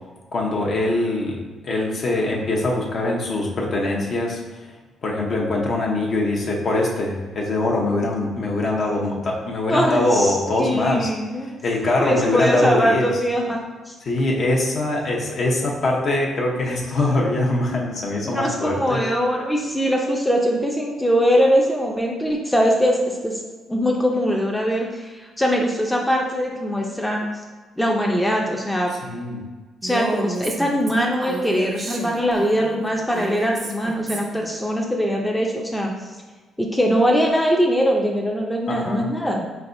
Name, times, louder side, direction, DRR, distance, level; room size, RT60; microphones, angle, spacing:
voice 1, 0.3-4.4 5.0-11.1 11.6-13.1 14.0-19.0 29.0-29.5 38.7-39.1, left 2 dB, 55° left, -2 dB, 0.8 m, -22 dB
voice 2, 9.7-11.5 12.0-13.9 18.2-23.4 23.7-27.3 27.8-28.9 29.8-35.9 36.6-39.5, equal, 5° left, 0 dB, 0.5 m, -21 dB
Female speech woman speaking, 29.8-34.5, right 3 dB, 45° right, 0.6 m, -32 dB
4.2 x 3.3 x 2.6 m, 1.3 s
cardioid pair, 90°, 0 cm